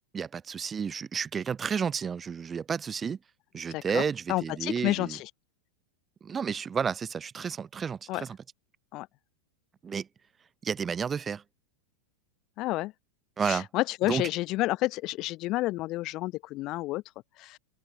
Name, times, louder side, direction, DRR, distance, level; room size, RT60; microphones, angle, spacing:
voice 1, 0.1-3.2 3.5-5.2 6.2-8.4 9.8-10.1 10.6-11.4 13.4-13.7 14.1-14.2, right 6 dB, 20° right, 0.6 m, -31 dB
voice 2, 3.7-4.0 4.3-5.3 8.1-8.2 8.9-9.1 12.6-12.9 13.4-17.0 17.4-17.6, left 18 dB, 40° left, 0.8 m, -30 dB
figure-of-eight pair, 90°, 0 cm